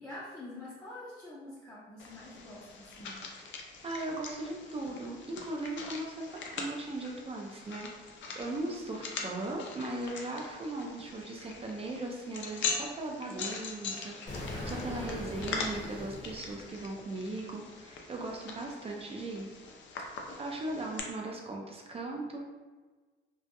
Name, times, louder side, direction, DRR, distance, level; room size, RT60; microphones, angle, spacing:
voice 1, 0.0-3.2 8.9-9.0 14.5-15.0, left 2 dB, 15° left, -9 dB, 0.5 m, -46 dB
sound 1, 2.0-21.0, left 4 dB, 70° left, 0.4 m, -42 dB
voice 2, 3.8-7.9 8.3-19.5 20.4-22.5, right 2 dB, 30° right, 0 dB, 0.4 m, -38 dB
Explosion, 14.3-17.2, left 1 dB, 35° left, 0.9 m, -41 dB
2.2 x 2.1 x 2.8 m, 1.3 s
cardioid pair, 90°, 20 cm